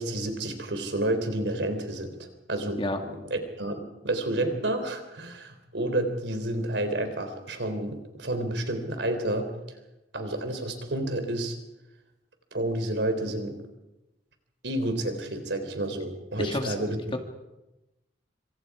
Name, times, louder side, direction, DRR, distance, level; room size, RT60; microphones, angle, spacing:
voice 1, 0.0-9.5 10.1-11.6 12.5-13.6 14.6-17.0, right 1 dB, 75° right, 7 dB, 3.8 m, -30 dB
voice 2, 16.4-16.7 17.1-17.2, left 1 dB, 30° left, 4 dB, 2.0 m, -29 dB
26.5 x 26.0 x 4.9 m, 0.98 s
head